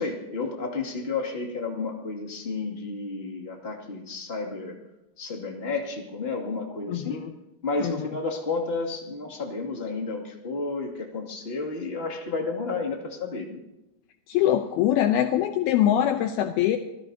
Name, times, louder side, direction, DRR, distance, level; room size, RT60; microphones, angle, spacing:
voice 1, 0.0-4.8 5.2-7.2 7.6-13.6, left 3 dB, 20° left, 0 dB, 1.8 m, -31 dB
voice 2, 6.9-7.3 7.8-8.1 14.3-16.8, left 11 dB, 80° left, 6 dB, 2.5 m, -23 dB
25.5 x 18.0 x 2.8 m, 0.97 s
omnidirectional pair, 4.8 m